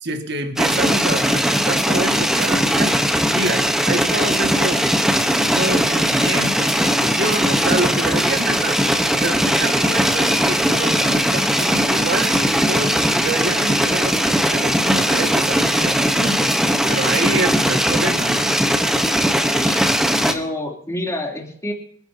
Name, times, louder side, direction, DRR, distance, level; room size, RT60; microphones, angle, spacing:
voice 1, 0.0-2.9 3.3-4.9 5.4-8.8 9.2-16.5 16.9-18.6, right 2 dB, 55° right, 5 dB, 2.0 m, -27 dB
sound 1, 0.6-20.3, equal, ahead, 1.0 m, -19 dB
voice 2, 20.2-21.7, left 1 dB, 15° left, -1 dB, 3.1 m, -27 dB
28.0 x 10.5 x 2.8 m, 0.64 s
head